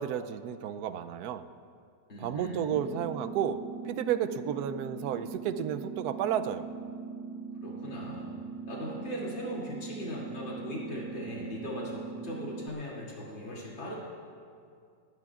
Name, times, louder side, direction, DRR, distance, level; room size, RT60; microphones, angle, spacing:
voice 1, 0.0-1.5 2.2-3.6 3.8-6.7, right 9 dB, 70° right, 10 dB, 1.0 m, -32 dB
voice 2, 2.1-2.7 7.6-8.3 8.7-13.9, equal, 90° left, -5 dB, 3.5 m, -39 dB
sound 1, 2.7-12.7, right 4 dB, 15° right, 0.5 m, -41 dB
19.0 x 18.5 x 2.4 m, 2.3 s
omnidirectional pair, 2.0 m